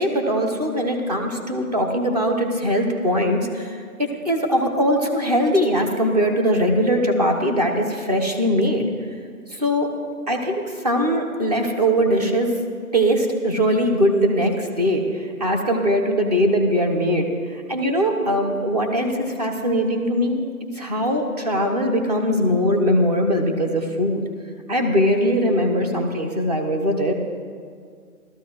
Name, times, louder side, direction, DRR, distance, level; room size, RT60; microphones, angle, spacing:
voice 1, 0.0-8.9 9.5-9.9 10.3-12.5 12.9-20.4 20.7-24.2 24.7-27.1, equal, 25° right, 2 dB, 1.0 m, -21 dB
15.5 x 13.0 x 3.1 m, 2.1 s
hypercardioid pair, 170°, 44 cm